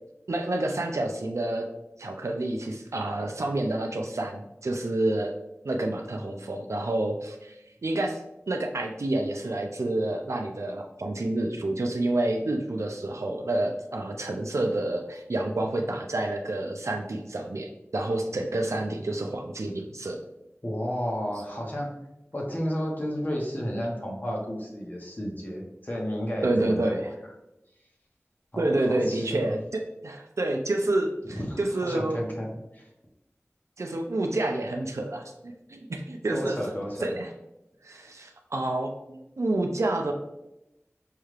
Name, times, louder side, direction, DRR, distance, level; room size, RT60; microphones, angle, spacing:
voice 1, 0.3-1.7 2.0-5.3 5.6-8.2 8.5-20.2 26.4-27.1 28.6-29.6 30.0-32.2 33.8-36.6 37.0-37.3 37.8-40.1, right 2 dB, 85° right, 2 dB, 0.4 m, -29 dB
voice 2, 20.6-21.9 22.3-27.0 28.5-29.5 31.2-32.9 36.3-37.1, equal, 40° left, -2 dB, 1.0 m, -32 dB
5.4 x 2.4 x 3.2 m, 0.91 s
wide cardioid pair, 50°, 5 cm